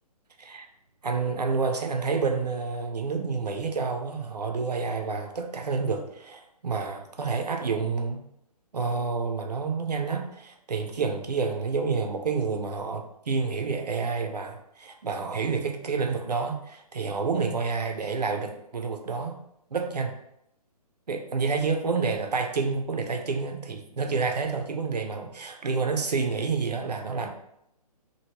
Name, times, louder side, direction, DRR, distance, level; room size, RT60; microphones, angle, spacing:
voice 1, 1.0-8.2 8.7-19.4 19.7-20.1 21.1-27.3, right 4 dB, 80° right, 4 dB, 0.6 m, -29 dB
3.0 x 2.7 x 2.9 m, 0.78 s
figure-of-eight pair, 135°, 20 cm